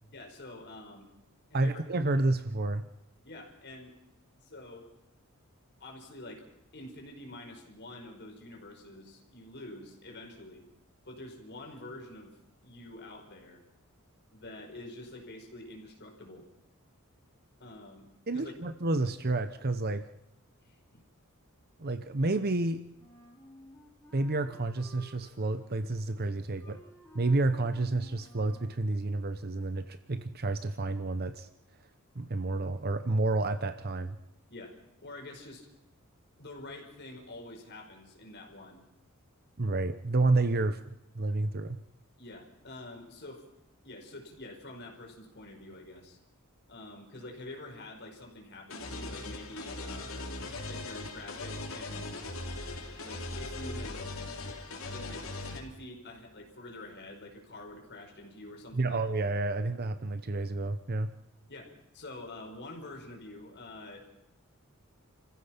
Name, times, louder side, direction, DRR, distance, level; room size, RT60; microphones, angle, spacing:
voice 1, 0.1-1.1 1.5-1.8 3.2-3.9 4.4-4.9 5.8-6.4 6.7-10.6 11.0-12.3 12.6-13.6 14.3-16.5 17.6-18.1 18.3-18.5 20.6-21.0 26.6-26.8 34.5-35.7 36.4-38.9 42.2-43.5 43.8-46.2 46.7-50.3 50.7-52.2 53.0-54.1 54.8-59.0 61.5-64.0, left 2 dB, 50° left, 2 dB, 5.0 m, -47 dB
voice 2, 1.5-2.9 18.3-20.1 21.8-22.9 24.1-26.8 27.1-31.5 32.2-34.2 39.6-40.8 41.1-41.8 58.7-61.1, right 2 dB, 45° right, 11 dB, 0.9 m, -30 dB
Wind instrument woodwind instrument, 23.0-28.8, left 1 dB, 10° left, 4.3 m, -55 dB
sound 1, 48.7-55.6, left 2 dB, 65° left, 3.7 m, -39 dB
29.0 x 15.5 x 5.9 m, 0.90 s
head